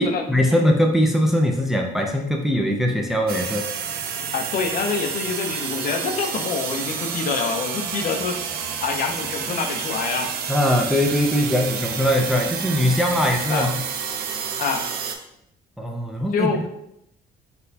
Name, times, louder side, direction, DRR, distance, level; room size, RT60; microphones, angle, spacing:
voice 1, 0.0-3.6 10.5-13.8 15.8-16.5, equal, ahead, 2 dB, 0.4 m, -21 dB
sound 1, 3.3-15.2, right 7 dB, 65° right, 0.5 m, -29 dB
voice 2, 4.3-8.4 8.8-10.3 13.5-13.7 14.6-14.9 16.3-16.6, left 5 dB, 60° left, 4 dB, 0.5 m, -26 dB
4.1 x 2.2 x 2.6 m, 0.77 s
cardioid pair, 110°, 17 cm